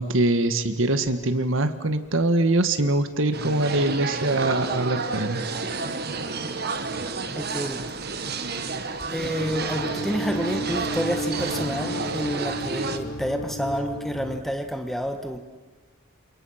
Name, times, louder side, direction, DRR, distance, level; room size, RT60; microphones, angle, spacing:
voice 1, 0.0-5.4, right 2 dB, 65° right, 10 dB, 1.6 m, -23 dB
sound 1, 3.3-13.0, right 4 dB, 50° right, 1.5 m, -31 dB
voice 2, 7.3-7.9 9.1-15.4, equal, ahead, 6 dB, 1.4 m, -29 dB
sound 2, 9.4-14.4, right 1 dB, 75° left, 2.0 m, -33 dB
28.5 x 28.0 x 5.8 m, 1.3 s
head